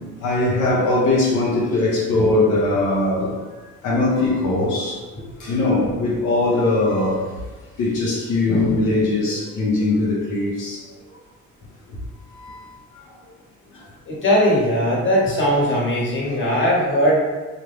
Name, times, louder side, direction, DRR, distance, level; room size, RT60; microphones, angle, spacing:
voice 1, 0.2-3.4 3.8-5.0 5.4-7.4 7.8-10.8 12.3-12.8, left 2 dB, 85° left, -4 dB, 0.6 m, -20 dB
voice 2, 14.1-17.2, equal, 40° left, -5 dB, 1.0 m, -19 dB
2.5 x 2.0 x 3.0 m, 1.3 s
cardioid pair, 90°, 30 cm